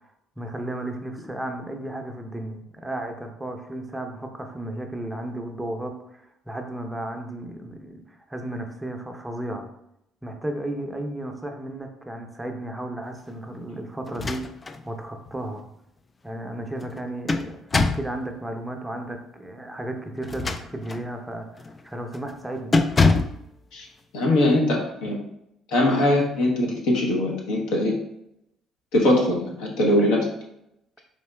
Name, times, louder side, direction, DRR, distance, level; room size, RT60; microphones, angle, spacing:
voice 1, 0.4-9.7 10.2-14.5 14.8-15.6 16.2-17.6 17.8-22.8, right 1 dB, 10° right, 4 dB, 0.6 m, -34 dB
sound 1, 14.1-14.8 15.3-15.4 16.8-18.2 20.2-21.1 21.6-21.8 22.1-22.4 22.7-23.4, left 3 dB, 30° left, 0.3 m, -24 dB
voice 2, 24.1-25.2 25.7-27.9 28.9-30.3, left 1 dB, 70° left, -1 dB, 0.9 m, -21 dB
4.2 x 2.8 x 2.2 m, 0.79 s
hypercardioid pair, 55°, 0 cm